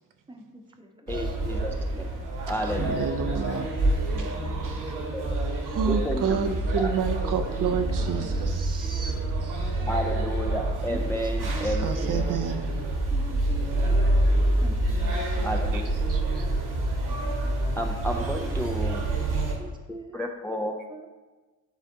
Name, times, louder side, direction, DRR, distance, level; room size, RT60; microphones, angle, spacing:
voice 1, 0.3-1.4 4.1-4.9 7.7-9.1 10.9-12.4 13.1-14.3 14.6-16.0 18.2-20.3 20.9-21.1, right 1 dB, 10° right, 3 dB, 0.9 m, -44 dB
voice 2, 1.1-2.0 2.5-3.1 5.1-5.2 5.8-6.6 9.9-12.2 15.4-15.9 17.8-19.0 20.1-20.8, equal, 5° left, 2 dB, 0.5 m, -31 dB
sound 1, 1.1-19.5, right 2 dB, 65° right, 1.7 m, -27 dB
voice 3, 2.5-3.7 4.1-5.1 5.6-9.1 9.6-9.7 11.6-12.6 15.7-15.8 16.1-16.5, right 7 dB, 50° right, 6 dB, 0.6 m, -30 dB
8.3 x 3.3 x 3.7 m, 1.3 s
hypercardioid pair, 55°, 43 cm